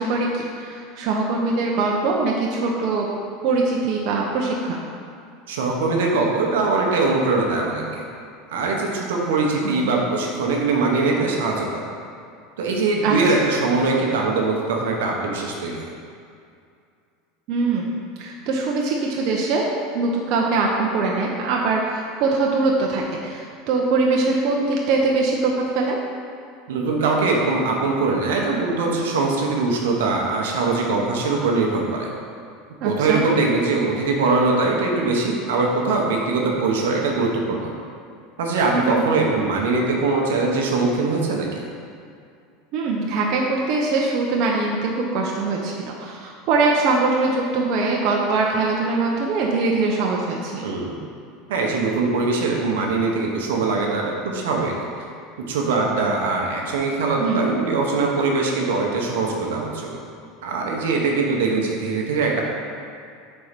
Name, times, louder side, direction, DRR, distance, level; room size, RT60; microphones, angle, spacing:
voice 1, 0.0-3.1 3.4-4.8 9.6-10.0 13.0-13.2 17.5-26.0 32.8-33.2 38.7-39.0 42.7-50.7 57.2-57.5, right 3 dB, 55° right, -2 dB, 0.7 m, -22 dB
voice 2, 5.5-8.0 8.5-11.8 12.6-15.9 26.7-32.1 32.8-37.7 38.4-41.6 50.6-50.9 51.5-54.7 55.5-60.0 60.4-62.4, right 3 dB, 85° right, 0 dB, 0.9 m, -22 dB
4.5 x 4.2 x 5.2 m, 2.4 s
supercardioid pair, 110°, 0 cm